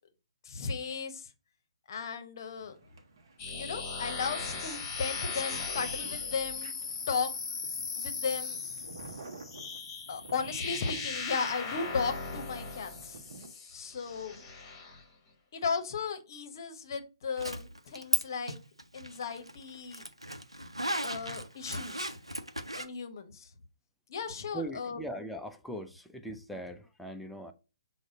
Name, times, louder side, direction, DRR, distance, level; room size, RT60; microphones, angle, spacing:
voice 1, 0.4-1.3 1.9-3.0 3.5-6.7 7.1-7.3 7.9-8.6 10.1-13.2 13.7-14.4 15.5-18.6 18.9-20.1 21.0-22.2 22.8-23.5 24.1-25.0, left 5 dB, 45° left, 0.7 m, -35 dB
sound 1, 2.5-13.5, right 3 dB, 45° right, 0.8 m, -52 dB
sound 2, 3.4-15.0, left 5 dB, 20° left, 1.0 m, -38 dB
Zipper (clothing), 17.4-18.2 18.5-22.9, right 1 dB, 90° right, 0.6 m, -35 dB
voice 2, 24.5-27.5, right 1 dB, ahead, 0.3 m, -40 dB
6.2 x 2.1 x 3.7 m
figure-of-eight pair, 135°, 3 cm